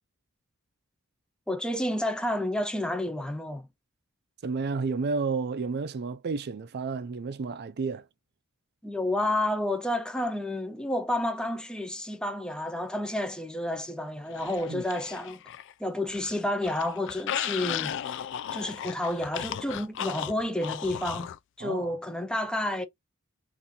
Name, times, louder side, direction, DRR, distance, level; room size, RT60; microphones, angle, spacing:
voice 1, 1.5-3.7 8.8-15.4 15.8-18.3 18.5-21.3 21.6-22.8, left 1 dB, 5° left, 0.6 m, -30 dB
voice 2, 4.4-8.1 14.7-14.8 21.6-22.0, right 4 dB, 50° right, 0.4 m, -31 dB
sound 1, 14.4-15.7 16.0-21.4, left 10 dB, 55° left, 0.4 m, -35 dB
4.2 x 2.6 x 3.6 m
head